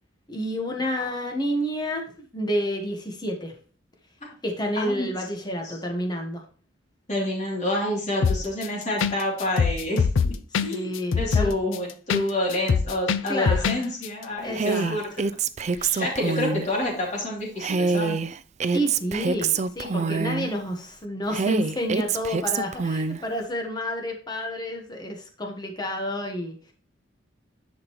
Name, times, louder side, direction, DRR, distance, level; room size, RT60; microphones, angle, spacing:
voice 1, 0.3-3.6 4.4-6.4 10.5-11.6 13.3-13.9 14.4-15.2 15.8-16.1 16.5-16.6 18.7-26.6, equal, 20° left, 2 dB, 1.3 m, -30 dB
voice 2, 4.7-5.1 7.1-10.3 10.6-15.0 15.7-18.2, left 1 dB, 35° left, -3 dB, 3.0 m, -28 dB
sound 1, 8.2-8.7 9.0-9.1 9.4-12.2 12.5-13.8 14.0-14.1, left 5 dB, 85° left, 0.5 m, -22 dB
Female speech woman speaking, 14.5-16.7 17.6-20.5 21.3-23.2, right 5 dB, 35° right, 0.4 m, -26 dB
10.5 x 5.1 x 3.1 m, 0.41 s
head